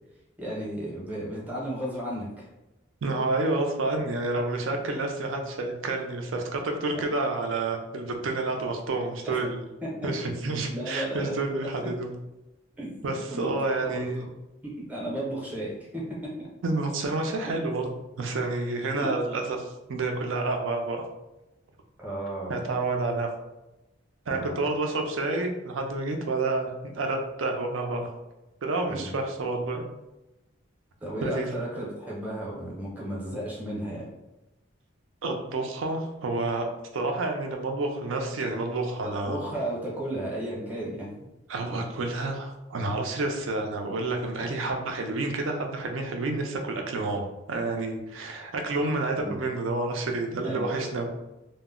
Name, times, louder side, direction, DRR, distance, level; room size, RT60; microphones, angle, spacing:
voice 1, 0.4-2.5 4.0-4.1 6.9-7.1 9.2-9.5 10.4-11.6 12.8-13.5 13.8-14.2 14.8-16.3 19.0-19.1 22.0-22.6 24.3-24.6 28.9-29.2 31.0-34.1 39.0-41.1 49.2-49.4 50.4-50.8, right 1 dB, 10° right, -5 dB, 0.6 m, -34 dB
voice 2, 3.0-9.6 10.0-12.1 13.0-14.3 16.6-17.8 18.2-21.1 22.5-23.3 24.3-28.2 28.6-29.8 31.2-31.5 35.2-36.7 36.9-39.4 41.5-51.1, right 2 dB, 80° right, 3 dB, 0.4 m, -29 dB
2.1 x 2.0 x 3.5 m, 0.98 s
head